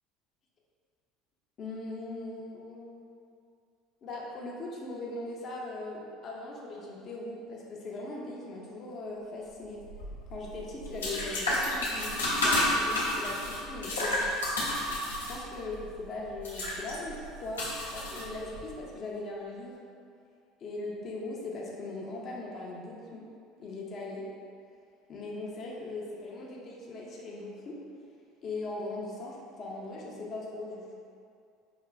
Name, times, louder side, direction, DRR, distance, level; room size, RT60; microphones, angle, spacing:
voice 1, 1.6-3.0 4.0-9.8 10.3-14.3 15.2-17.7 17.9-19.8 20.6-23.3 23.6-24.2 25.1-27.8 28.4-30.9, left 2 dB, 45° left, -3 dB, 0.7 m, -39 dB
sound 1, 9.8-18.7, left 1 dB, 85° left, 0.6 m, -31 dB
4.9 x 2.3 x 2.3 m, 2.4 s
hypercardioid pair, 65°, 0 cm